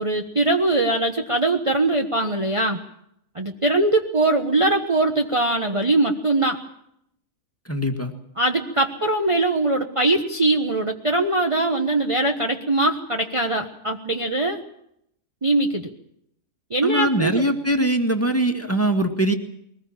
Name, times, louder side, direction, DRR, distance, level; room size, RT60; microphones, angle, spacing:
voice 1, 0.0-2.8 3.3-6.6 8.4-14.6 15.4-15.9 16.7-17.4, right 2 dB, 20° right, 3 dB, 1.2 m, -21 dB
voice 2, 7.7-8.1 16.8-19.3, right 1 dB, 10° left, 5 dB, 2.0 m, -22 dB
22.5 x 20.0 x 7.4 m, 0.74 s
omnidirectional pair, 1.7 m